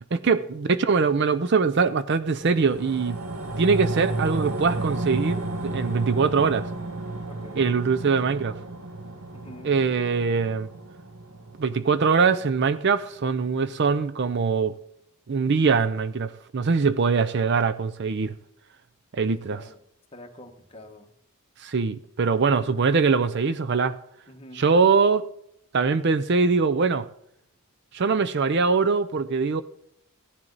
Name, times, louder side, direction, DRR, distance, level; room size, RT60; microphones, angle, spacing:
voice 1, 0.1-3.2 3.6-6.7 7.6-8.6 9.6-10.7 11.6-14.8 15.3-18.3 19.1-19.6 21.6-24.0 24.5-25.3 25.7-27.1 27.9-29.6, right 5 dB, 50° right, 0.5 m, -22 dB
sound 1, 2.4-13.0 13.4-13.5, right 2 dB, 70° right, 1.4 m, -33 dB
voice 2, 7.3-7.6 9.3-9.7 19.5-19.8 20.1-21.1 22.3-22.6 24.3-24.6, left 1 dB, 25° left, 1.4 m, -46 dB
16.0 x 10.5 x 4.0 m
head